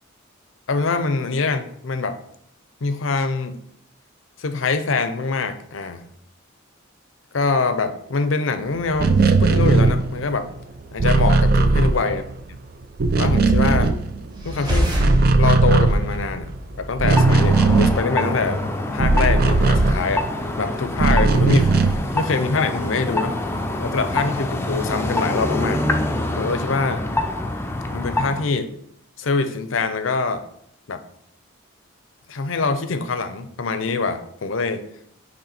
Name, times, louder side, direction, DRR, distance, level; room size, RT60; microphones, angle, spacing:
voice 1, 0.7-2.2 2.8-3.6 4.4-6.1 7.3-10.5 10.9-12.2 13.2-13.9 14.4-15.0 15.4-18.6 18.9-20.3 20.6-21.7 22.1-23.4 23.8-25.9 26.4-27.1 27.9-28.7 29.2-30.4 30.9-31.0 32.3-34.8, left 4 dB, 70° left, 10 dB, 0.6 m, -24 dB
sound 1, 8.9-12.6 12.8-14.6 14.8-20.5 21.0-22.2, right 3 dB, 50° right, 0.5 m, -18 dB
sound 2, 14.3-17.1, equal, 20° right, 1.1 m, -24 dB
sound 3, 17.1-28.5, left 2 dB, 10° left, 0.4 m, -26 dB
8.8 x 3.2 x 4.2 m, 0.71 s
head